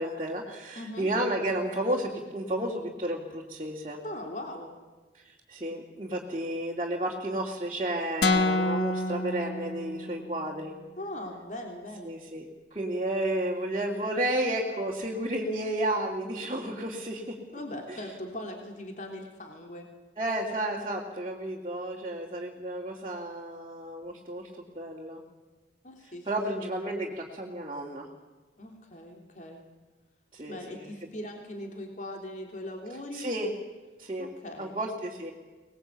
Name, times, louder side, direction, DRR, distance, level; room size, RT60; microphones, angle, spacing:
voice 1, 0.0-4.0 5.1-10.8 12.0-17.6 17.9-18.0 20.2-25.2 26.3-28.1 30.3-30.8 33.1-33.5 34.0-34.3 34.6-35.3, right 1 dB, 30° right, -3 dB, 2.9 m, -32 dB
voice 2, 0.7-1.1 4.0-4.8 11.0-12.1 17.5-19.9 25.8-26.3 28.6-29.6 30.5-33.3 34.2-34.7, left 1 dB, 45° left, 2 dB, 3.3 m, -40 dB
sound 1, 8.2-10.3, left 2 dB, 70° left, 1.6 m, -27 dB
25.0 x 20.0 x 8.5 m, 1.2 s
head